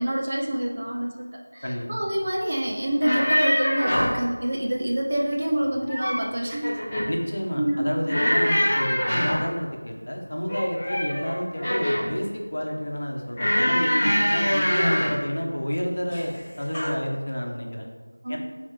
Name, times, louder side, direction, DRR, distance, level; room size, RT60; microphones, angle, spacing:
voice 1, 0.0-6.8 7.6-7.9 14.7-15.0 18.2-18.4, right 1 dB, 20° right, -1 dB, 0.4 m, -27 dB
sound 1, 2.9-4.2 5.7-6.3 6.6-7.1 8.1-9.5 10.5-12.2 13.3-15.2 16.1-16.4 16.7-16.9, equal, 5° left, 0.7 m, -24 dB
voice 2, 7.1-17.9 18.3-18.4, equal, 40° left, 0 dB, 0.9 m, -30 dB
9.0 x 4.0 x 3.1 m, 1.4 s
figure-of-eight pair, 175°, 0 cm